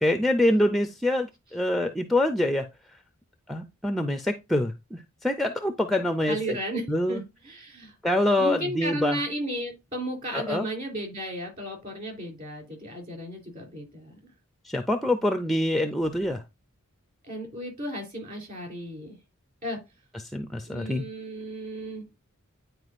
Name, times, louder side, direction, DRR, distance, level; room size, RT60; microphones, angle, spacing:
voice 1, 0.0-2.7 3.5-6.6 6.9-7.2 8.0-9.2 10.3-10.7 14.7-16.4 20.3-21.0, left 1 dB, ahead, 0.4 m, -25 dB
voice 2, 6.2-7.9 8.4-14.3 17.3-19.2 19.6-19.8 20.6-22.1, right 1 dB, 35° right, 3.4 m, -34 dB
9.8 x 4.6 x 2.5 m
head